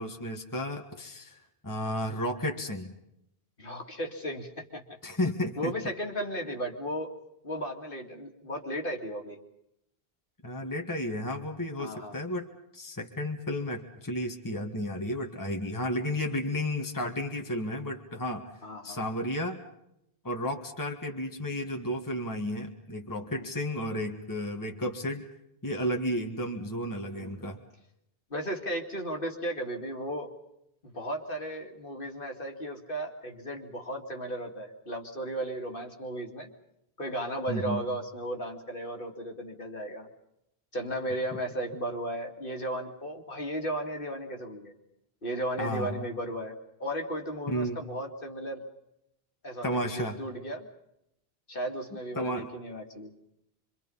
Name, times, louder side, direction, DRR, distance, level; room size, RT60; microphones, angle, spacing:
voice 1, 0.0-2.9 5.0-5.7 10.4-12.5 12.7-18.5 18.8-19.6 20.2-25.3 25.6-27.6 37.5-37.8 45.6-46.1 47.5-47.8 49.6-50.2 52.2-52.5, left 1 dB, 20° left, 3 dB, 1.8 m, -32 dB
voice 2, 3.6-5.0 5.6-7.1 7.4-9.4 11.8-12.2 18.6-19.0 23.3-23.5 27.1-27.6 28.3-30.3 30.8-36.5 37.0-40.1 40.7-44.7 45.2-48.6 49.4-50.7 51.5-53.1, right 1 dB, 55° left, 2 dB, 2.7 m, -35 dB
26.5 x 24.5 x 5.6 m, 0.81 s
omnidirectional pair, 1.1 m